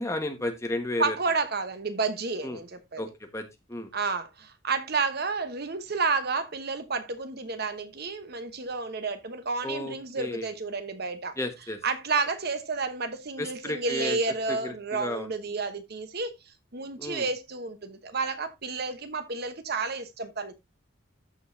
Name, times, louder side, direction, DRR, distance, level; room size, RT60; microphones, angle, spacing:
voice 1, 0.0-1.2 2.4-2.6 3.0-3.1 3.3-3.9 9.6-10.5 11.4-11.8 13.4-14.2 14.5-15.3 17.0-17.3, left 1 dB, 15° left, 1.4 m, -33 dB
voice 2, 1.0-3.1 3.9-11.4 11.8-16.3 16.7-20.5, right 4 dB, 50° right, 1.0 m, -31 dB
14.0 x 5.5 x 2.7 m
head